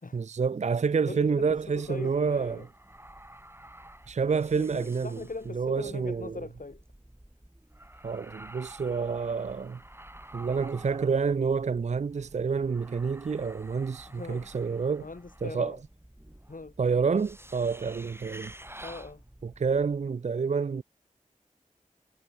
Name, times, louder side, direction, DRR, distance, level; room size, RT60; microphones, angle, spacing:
voice 1, 0.1-2.7 4.1-5.2 5.5-6.4 8.0-9.8 10.3-15.1 15.4-15.8 16.8-18.5 19.4-20.8, right 5 dB, 55° right, 0.4 m, -28 dB
voice 2, 1.1-2.7 4.5-6.8 14.1-14.6 15.0-15.8 16.5-16.7 18.8-19.2, left 3 dB, 80° left, 5.0 m, -41 dB
sound 1, 1.2-20.1, right 1 dB, 15° right, 5.9 m, -50 dB
wide cardioid pair, 45°, 14 cm